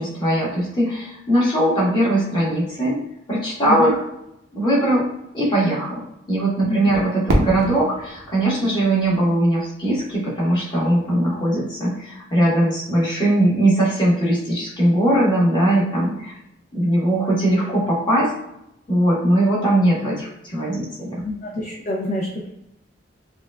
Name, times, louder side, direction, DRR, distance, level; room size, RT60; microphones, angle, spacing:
voice 1, 0.0-3.0 3.3-4.0 4.5-5.1 5.3-6.0 6.3-16.3 16.7-18.3 18.9-21.2, right 1 dB, 25° left, -6 dB, 1.3 m, -20 dB
voice 2, 6.7-7.0 21.2-22.5, left 1 dB, 40° left, -2 dB, 0.5 m, -27 dB
Fireworks, 7.3-10.1, equal, 75° right, 0.7 m, -26 dB
4.9 x 2.3 x 2.3 m, 0.82 s
head